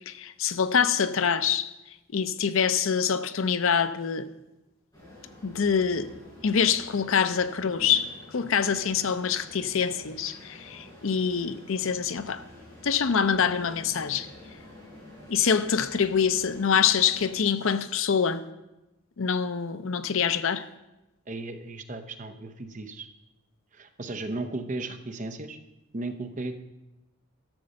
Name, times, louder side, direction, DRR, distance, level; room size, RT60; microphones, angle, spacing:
voice 1, 0.1-1.7 2.1-4.3 5.4-6.1 6.4-12.4 12.8-14.3 15.3-18.4 19.2-20.6, left 7 dB, 65° left, 0.6 m, -25 dB
sound 1, 4.9-17.3, left 1 dB, 20° left, 5.3 m, -48 dB
voice 2, 21.3-23.1 23.7-25.6 25.9-26.6, right 2 dB, 35° right, 0.7 m, -35 dB
12.5 x 6.8 x 6.4 m
head